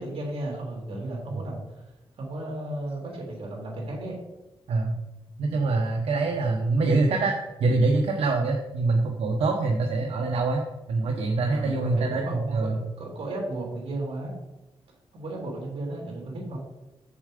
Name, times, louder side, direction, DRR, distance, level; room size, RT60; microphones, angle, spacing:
voice 1, 0.0-1.6 2.2-4.2 11.5-14.3 15.1-16.6, right 2 dB, 70° right, -1 dB, 3.3 m, -34 dB
voice 2, 4.7-5.0 5.4-10.6 10.9-12.8, right 3 dB, 90° right, 1 dB, 0.9 m, -24 dB
7.5 x 7.1 x 5.0 m, 1.0 s
cardioid pair, 105°, 10 cm